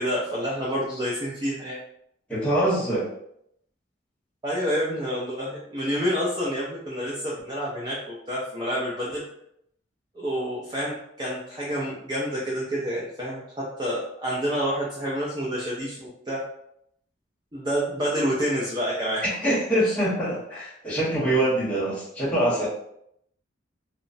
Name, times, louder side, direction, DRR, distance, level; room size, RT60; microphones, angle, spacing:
voice 1, 0.0-1.8 4.4-9.2 10.1-16.4 17.5-19.3 19.8-19.9, equal, 25° right, -6 dB, 0.4 m, -28 dB
voice 2, 2.3-3.1 19.2-22.7, right 1 dB, 5° left, -9 dB, 1.1 m, -24 dB
2.9 x 2.0 x 2.6 m, 0.73 s
head